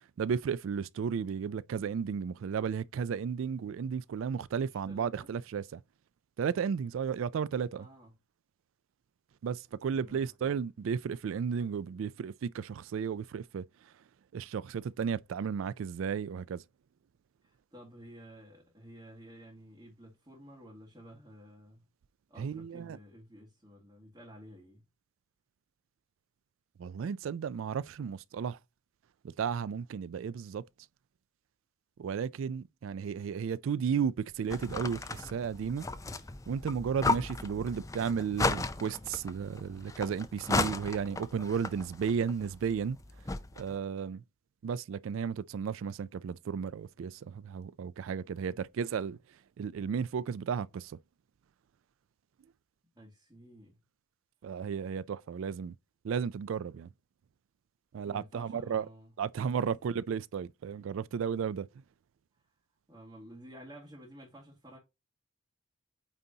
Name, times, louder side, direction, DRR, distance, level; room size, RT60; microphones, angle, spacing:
voice 1, 0.2-5.8 6.4-7.9 9.4-13.9 14.3-16.6 22.4-23.0 26.8-28.6 29.2-30.6 32.0-35.9 36.5-43.0 43.6-44.2 44.6-49.2 49.6-51.0 54.4-55.8 56.0-56.9 57.9-58.9 59.2-61.7, right 6 dB, 75° right, 0.3 m, -34 dB
voice 2, 4.6-5.3 7.7-8.1 9.9-10.5 17.4-21.9 22.3-24.8 48.5-48.6 52.9-53.8 58.0-59.1 59.6-59.8 62.9-64.8, equal, 20° right, 2.2 m, -52 dB
sound 1, 34.5-43.8, left 3 dB, 15° left, 0.5 m, -35 dB
8.9 x 4.0 x 2.8 m
head